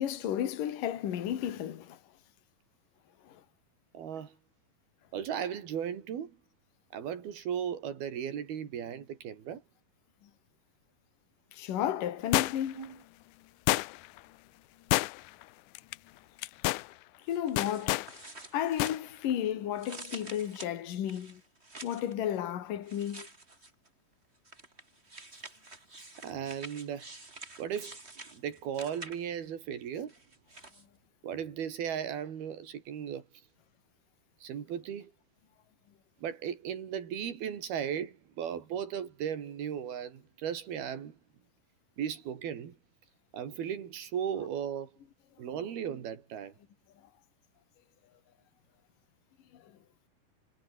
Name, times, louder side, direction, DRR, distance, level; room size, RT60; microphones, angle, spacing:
voice 1, 0.0-2.0 3.2-3.4 10.2-10.3 11.5-13.0 17.3-18.1 18.5-21.4 21.8-23.3 49.5-49.7, left 10 dB, 65° left, 3.6 m, -33 dB
voice 2, 3.9-4.3 5.1-6.4 6.9-9.6 12.7-13.0 26.2-27.1 27.6-28.0 28.3-30.1 31.2-33.3 34.4-35.1 36.2-41.2 42.0-42.8 43.3-44.9 45.4-46.5, right 8 dB, 85° right, 4.8 m, -36 dB
sound 1, 12.3-12.8 13.7-14.2 14.9-15.4 15.8-16.0 16.4-16.9 17.6-18.1 18.8-19.0 19.3-19.4, left 20 dB, 90° left, 1.7 m, -28 dB
sound 2, 17.3-19.4 19.7-22.1 22.8-23.9 24.4-29.5 30.1-30.8, right 2 dB, 15° right, 3.8 m, -49 dB
omnidirectional pair, 4.3 m